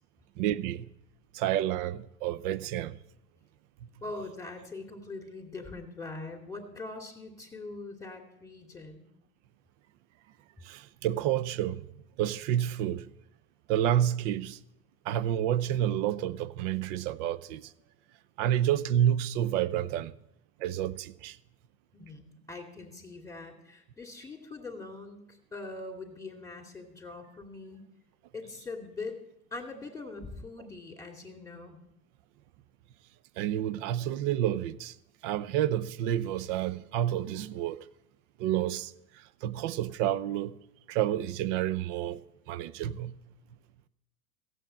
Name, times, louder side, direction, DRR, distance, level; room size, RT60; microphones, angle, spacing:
voice 1, 0.4-0.9 1.3-3.0 10.6-11.8 12.2-13.1 13.7-14.6 15.1-17.7 18.4-20.1 20.6-21.4 33.4-34.9 35.2-37.9 38.4-38.9 39.4-40.6 40.9-43.2, right 11 dB, 50° right, 0.8 m, -29 dB
voice 2, 4.0-9.1 17.8-17.9 21.9-27.9 28.3-29.2 29.5-31.8, left 3 dB, 5° left, 2.5 m, -42 dB
15.5 x 7.7 x 7.6 m
hypercardioid pair, 85°, 47 cm